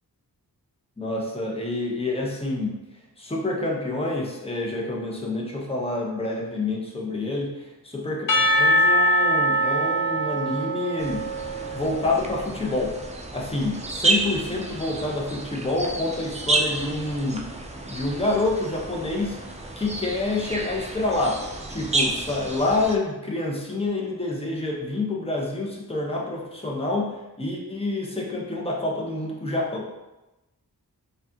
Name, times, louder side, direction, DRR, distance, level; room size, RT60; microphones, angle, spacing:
voice 1, 1.0-2.7 3.2-11.2 11.7-12.9 13.3-17.5 17.9-19.4 19.8-21.4 21.7-29.9, left 2 dB, 15° left, -3 dB, 0.8 m, -27 dB
Percussion / Church bell, 8.3-12.5, equal, 55° left, 0.5 m, -23 dB
sound 1, 11.0-23.0, right 2 dB, 20° right, 0.4 m, -30 dB
4.7 x 2.4 x 2.7 m, 1.0 s
wide cardioid pair, 55°, 39 cm